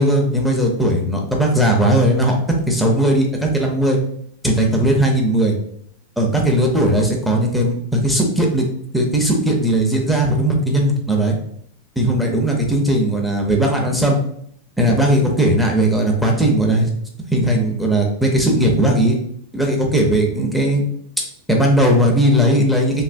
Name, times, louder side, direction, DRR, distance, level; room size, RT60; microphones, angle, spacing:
voice 1, 0.0-2.4 2.7-4.0 4.4-5.6 6.2-8.7 8.9-11.4 12.0-14.2 14.8-16.9 17.3-19.2 19.5-20.8 21.5-23.0, right 1 dB, ahead, 0 dB, 0.6 m, -17 dB
3.3 x 2.6 x 2.5 m, 0.67 s
supercardioid pair, 150°, 0 cm